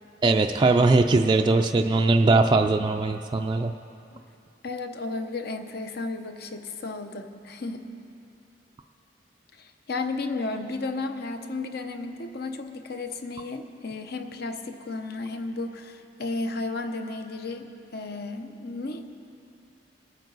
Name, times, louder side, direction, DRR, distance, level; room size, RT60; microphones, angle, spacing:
voice 1, 0.2-3.7, right 3 dB, 25° right, 4 dB, 0.3 m, -20 dB
voice 2, 4.6-7.9 9.6-19.3, left 3 dB, 60° left, 7 dB, 0.8 m, -33 dB
23.0 x 9.1 x 4.0 m, 2.7 s
head